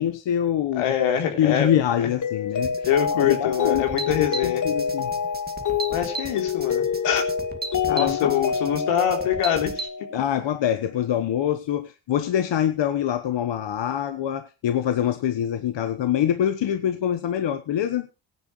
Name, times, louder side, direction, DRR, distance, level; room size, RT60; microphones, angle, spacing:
voice 1, 0.0-0.9 1.4-2.9 3.2-5.1 7.9-8.4 10.1-18.1, left 10 dB, 60° left, 1.2 m, -25 dB
voice 2, 0.8-2.1 2.8-4.6 5.9-7.2 7.8-9.9, left 9 dB, 85° left, 3.3 m, -24 dB
Mallet percussion, 2.2-10.4, left 7 dB, 35° left, 1.0 m, -27 dB
sound 1, 2.6-9.9, right 3 dB, 20° right, 2.1 m, -36 dB
17.5 x 10.0 x 3.1 m
supercardioid pair, 65°, 50 cm